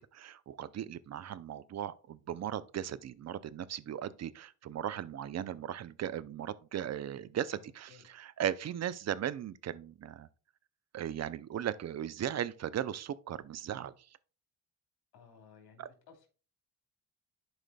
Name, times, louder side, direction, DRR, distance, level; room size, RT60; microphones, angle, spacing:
voice 1, 0.1-10.3 10.9-13.9 15.8-15.9, right 10 dB, 40° right, 0.5 m, -37 dB
voice 2, 7.5-8.1 15.1-16.3, left 6 dB, 70° left, 2.5 m, -59 dB
11.5 x 4.9 x 2.2 m
cardioid pair, 85°, 40 cm